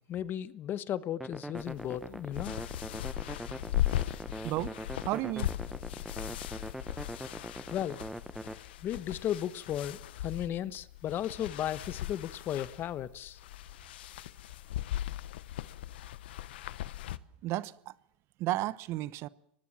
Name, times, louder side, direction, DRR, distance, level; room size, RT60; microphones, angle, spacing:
voice 1, 0.1-2.6 7.7-8.0 8.8-13.4, left 11 dB, 40° left, 1.1 m, -35 dB
sound 1, 1.2-8.6, right 1 dB, 5° right, 1.0 m, -42 dB
sound 2, 1.6-17.2, left 13 dB, 80° left, 1.0 m, -38 dB
voice 2, 4.4-4.7 5.0-5.5 17.4-17.9 18.4-19.3, right 16 dB, 50° right, 0.9 m, -33 dB
24.0 x 19.0 x 7.4 m
hypercardioid pair, 110°, 6 cm